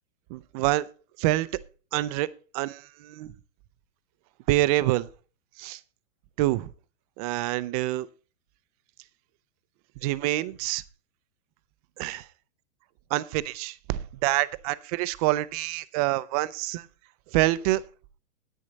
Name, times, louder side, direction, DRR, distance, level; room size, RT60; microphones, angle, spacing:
voice 1, 0.3-0.9 1.2-1.5 1.9-2.3 2.5-3.3 4.5-5.1 5.6-5.8 6.4-6.7 7.2-8.1 10.0-10.8 12.0-12.3 13.1-16.9 17.3-17.8, right 17 dB, 30° right, 0.4 m, -26 dB
9.9 x 9.3 x 4.0 m
hypercardioid pair, 130°, 39 cm